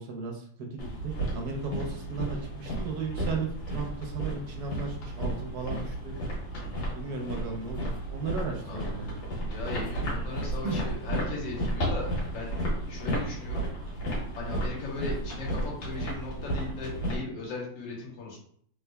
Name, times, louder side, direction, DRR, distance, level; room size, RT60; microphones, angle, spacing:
voice 1, 0.0-6.1 6.9-9.2 10.6-10.8, right 4 dB, 70° right, 1 dB, 1.0 m, -35 dB
sound 1, 0.8-17.2, right 1 dB, 90° left, 1.9 m, -33 dB
voice 2, 6.5-7.0 8.7-8.8 9.5-12.5 12.9-13.7 14.4-18.4, left 3 dB, 70° left, -2 dB, 1.7 m, -38 dB
3.5 x 3.2 x 2.2 m, 0.63 s
omnidirectional pair, 2.1 m